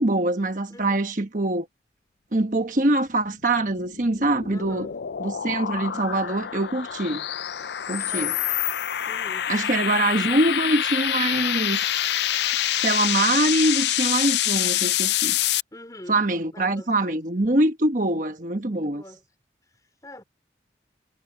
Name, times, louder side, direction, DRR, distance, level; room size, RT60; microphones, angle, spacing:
voice 1, 0.0-1.7 2.3-4.9 5.2-7.2 7.9-8.3 9.5-12.1 12.8-15.4 16.1-19.0, right 2 dB, 45° right, 1.2 m, -24 dB
voice 2, 0.7-1.0 4.5-4.9 8.0-8.4 9.1-9.5 15.7-16.2 16.5-17.2 18.7-19.2 20.0-20.2, left 1 dB, 20° left, 4.5 m, -44 dB
sound 1, 3.6-15.6, left 12 dB, 70° left, 0.5 m, -26 dB
head